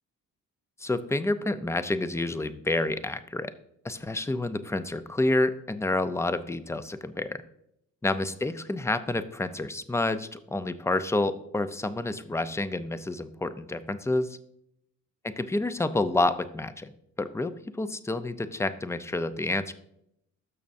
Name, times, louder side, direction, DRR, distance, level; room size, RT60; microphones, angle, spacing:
voice 1, 0.8-3.5 3.8-7.4 8.0-14.4 15.2-16.9 17.2-19.7, left 2 dB, 10° left, 12 dB, 0.5 m, -29 dB
12.5 x 6.2 x 2.6 m, 0.77 s
cardioid pair, 90°, 30 cm